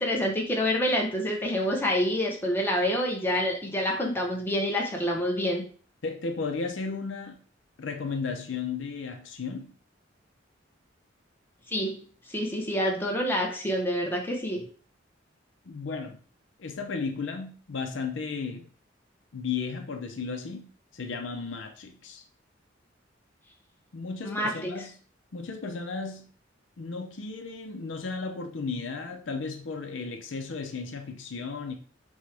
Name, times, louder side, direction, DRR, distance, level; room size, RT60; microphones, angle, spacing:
voice 1, 0.0-5.6 11.7-12.0 12.3-14.6 24.2-24.7, equal, 10° left, 0.9 m, -27 dB
voice 2, 6.0-7.4 7.8-9.7 15.7-16.2 16.6-18.7 19.3-22.2 23.9-24.9 25.3-26.3 26.8-31.7, left 4 dB, 75° left, 0.6 m, -34 dB
6.2 x 2.3 x 3.3 m
head